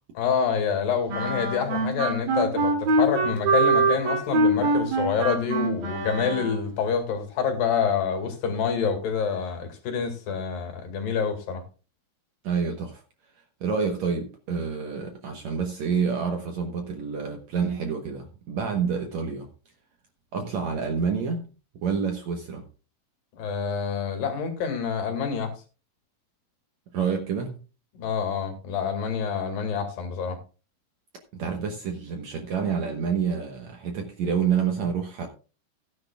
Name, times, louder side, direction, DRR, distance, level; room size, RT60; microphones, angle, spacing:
voice 1, 0.2-11.6 23.4-25.5 28.0-30.4, left 6 dB, 80° left, 3.9 m, -27 dB
sound 1, 1.1-6.7, right 2 dB, 85° right, 3.9 m, -24 dB
voice 2, 12.4-13.0 13.6-19.5 20.3-21.5 21.8-22.6 26.9-27.6 31.3-35.3, right 6 dB, 65° right, 2.1 m, -28 dB
16.5 x 10.0 x 2.3 m
omnidirectional pair, 3.9 m